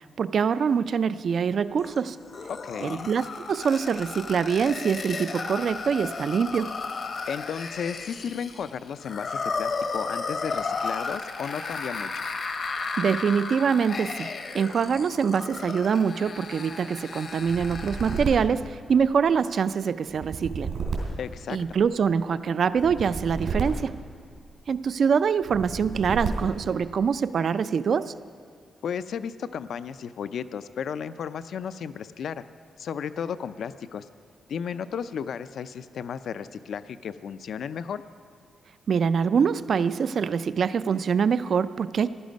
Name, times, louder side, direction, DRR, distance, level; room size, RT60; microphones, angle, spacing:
voice 1, 0.2-2.2 2.8-6.7 12.7-20.7 21.5-24.0 24.7-28.1 38.9-42.1, right 6 dB, 50° right, 15 dB, 0.3 m, -24 dB
sound 1, 1.8-18.4, left 4 dB, 45° left, 0.8 m, -34 dB
voice 2, 2.5-3.1 7.3-12.2 21.2-21.8 28.8-32.4 32.8-34.1 34.5-38.0, left 7 dB, 65° left, 13 dB, 0.4 m, -34 dB
sound 2, 17.4-19.4 20.1-22.0 22.7-24.7 25.4-26.8, right 4 dB, 80° right, 3.0 m, -33 dB
15.5 x 11.5 x 5.2 m, 2.1 s
wide cardioid pair, 160°, 0 cm